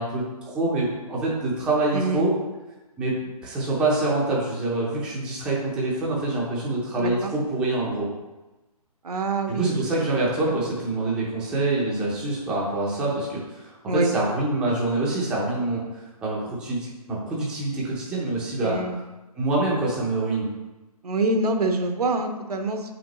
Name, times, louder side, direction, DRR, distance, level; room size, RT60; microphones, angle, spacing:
voice 1, 0.0-2.3 3.0-3.1 3.4-8.1 9.5-18.8 19.4-20.5, right 2 dB, 5° right, -6 dB, 0.6 m, -26 dB
voice 2, 1.9-2.2 7.0-7.3 9.0-9.7 13.9-14.1 18.6-19.0 21.0-22.9, right 2 dB, 75° right, 5 dB, 0.9 m, -25 dB
7.0 x 5.1 x 3.0 m, 1.1 s
hypercardioid pair, 160°, 20 cm